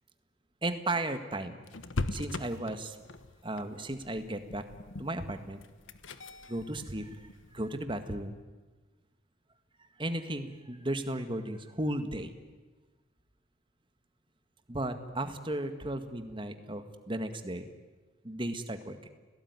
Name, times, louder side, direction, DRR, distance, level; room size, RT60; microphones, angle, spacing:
voice 1, 0.6-1.6 2.1-3.0 3.4-4.6 5.0-5.6 6.5-7.1 7.5-8.4 10.0-12.3 14.7-17.7 18.2-19.1, right 1 dB, 25° right, 9 dB, 1.7 m, -35 dB
sound 1, 1.7-7.8, left 2 dB, 85° left, 1.4 m, -41 dB
30.0 x 18.0 x 9.7 m, 1.3 s
head